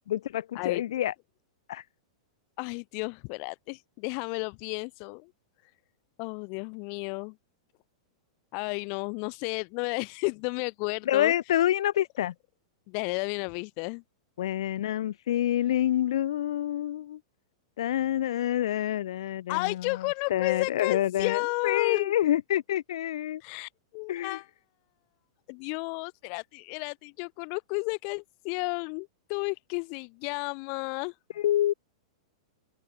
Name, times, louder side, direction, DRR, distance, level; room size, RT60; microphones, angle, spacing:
voice 1, 0.1-1.1 1.7-1.8 11.0-12.3 14.4-17.2 17.8-23.4 24.1-24.4 31.4-31.7, left 12 dB, 65° left, 3.1 m, -27 dB
voice 2, 2.6-5.3 6.2-7.3 8.5-11.3 12.9-14.0 19.5-22.1 23.4-24.5 25.5-31.1, left 40 dB or more, 35° left, 0.8 m, -32 dB
open air
supercardioid pair, 170°, 3 cm